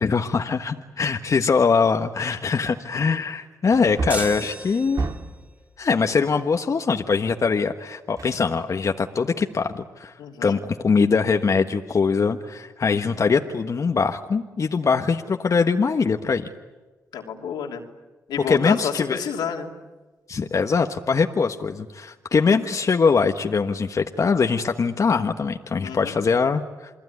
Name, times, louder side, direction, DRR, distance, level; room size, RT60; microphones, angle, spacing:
voice 1, 0.0-5.0 5.8-10.1 10.4-16.5 18.5-19.2 20.3-26.9, left 5 dB, 50° left, 5 dB, 1.4 m, -22 dB
Wood, 1.7-1.8 2.3-2.4 3.7-5.5 8.2-8.9 9.3-9.4, right 3 dB, 55° right, 2.6 m, -31 dB
sound 1, 4.1-5.4, right 2 dB, 20° right, 3.9 m, -34 dB
voice 2, 10.2-10.6 17.1-17.8 18.3-19.7 25.8-26.2, left 7 dB, 85° left, 2 dB, 3.0 m, -29 dB
28.5 x 20.5 x 9.7 m, 1.2 s
supercardioid pair, 55°, 7 cm